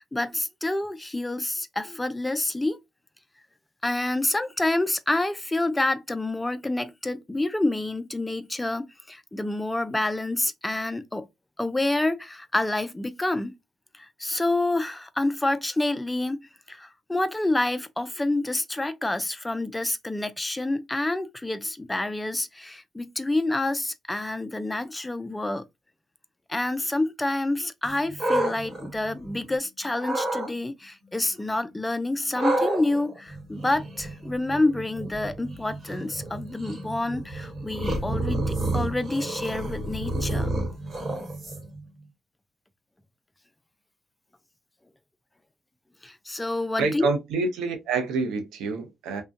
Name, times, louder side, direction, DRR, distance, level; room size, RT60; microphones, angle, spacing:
voice 1, 0.0-2.8 3.8-11.3 11.6-13.6 14.0-25.6 26.5-40.5 46.0-47.1, left 2 dB, 10° left, 0.3 m, -28 dB
sound 1, 27.8-29.6 30.0-30.5 32.3-41.8, right 1 dB, 35° right, 1.1 m, -30 dB
voice 2, 46.8-49.2, right 4 dB, 90° right, 0.6 m, -27 dB
2.7 x 2.1 x 2.3 m
cardioid pair, 90°, 0 cm